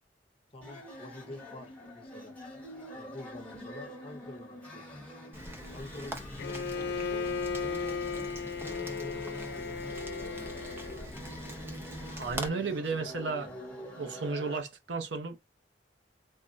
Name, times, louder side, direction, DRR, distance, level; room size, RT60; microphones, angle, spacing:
voice 1, 0.5-2.4 2.9-5.0 5.7-7.3 7.6-9.2 9.6-11.0, left 1 dB, 35° left, 0.8 m, -48 dB
sound 1, 0.6-14.6, equal, 10° left, 1.2 m, -45 dB
Rain, 5.3-12.5, equal, 15° right, 0.5 m, -43 dB
Bowed string instrument, 6.4-11.1, left 5 dB, 65° left, 0.3 m, -36 dB
voice 2, 12.2-13.5 14.0-15.4, right 4 dB, 90° right, 0.7 m, -33 dB
3.5 x 2.2 x 2.5 m
head